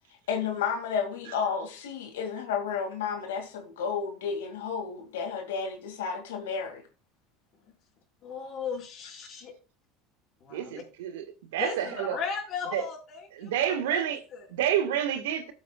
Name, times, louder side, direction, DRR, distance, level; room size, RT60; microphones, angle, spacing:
voice 1, 0.3-6.8, left 6 dB, 90° left, 2.2 m, -32 dB
voice 2, 8.2-9.5 10.4-10.7 11.6-14.4, left 5 dB, 50° left, 4.8 m, -37 dB
voice 3, 10.5-12.2 12.7-12.9 13.3-14.2 14.5-15.5, right 10 dB, 85° right, 1.5 m, -29 dB
15.0 x 8.2 x 2.3 m
supercardioid pair, 90°, 0 cm